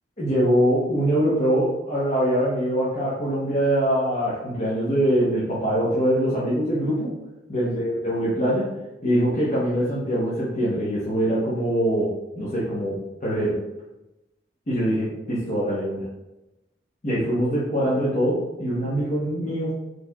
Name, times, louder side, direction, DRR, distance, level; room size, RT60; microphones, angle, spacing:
voice 1, 0.2-7.1 7.5-8.7 9.0-13.6 14.7-16.1 17.0-19.7, equal, 40° left, -8 dB, 0.8 m, -23 dB
4.4 x 3.2 x 2.3 m, 0.98 s
head